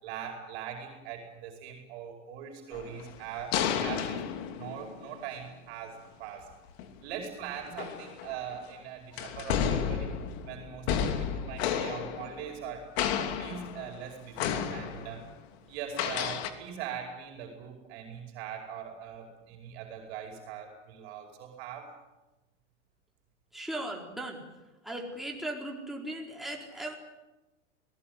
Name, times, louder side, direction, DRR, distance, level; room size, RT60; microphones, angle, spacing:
voice 1, 0.0-4.3 4.5-6.5 7.0-10.2 10.4-15.3 15.7-22.0, right 8 dB, 60° right, 3 dB, 5.1 m, -41 dB
sound 1, 2.7-5.2 6.7-6.9 7.6-8.6 9.2-12.7 13.0-14.0 14.4-15.3 15.9-16.5, left 8 dB, 55° left, 2.9 m, -32 dB
voice 2, 23.5-24.4 24.8-27.0, right 1 dB, ahead, 0 dB, 4.5 m, -37 dB
21.5 x 19.0 x 9.5 m, 1.0 s
hypercardioid pair, 130°, 36 cm